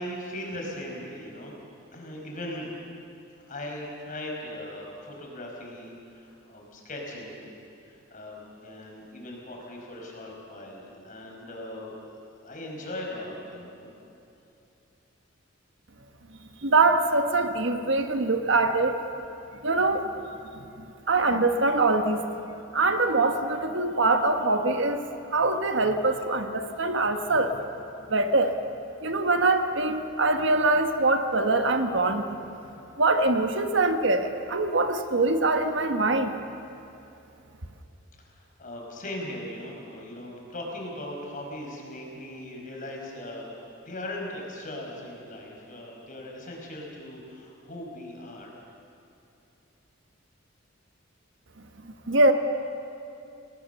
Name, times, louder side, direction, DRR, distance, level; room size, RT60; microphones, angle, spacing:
voice 1, 0.0-1.5 1.9-2.7 3.5-7.5 7.9-11.9 12.4-13.9 38.2-43.5 43.8-48.5, left 1 dB, 40° left, -1 dB, 5.3 m, -39 dB
voice 2, 16.6-19.0 19.6-20.1 20.8-22.3 22.7-25.0 25.3-27.6 28.1-28.5 29.0-32.4 33.0-36.3 52.1-52.3, right 2 dB, 65° right, 7 dB, 1.4 m, -23 dB
30.0 x 19.0 x 7.0 m, 2.7 s
head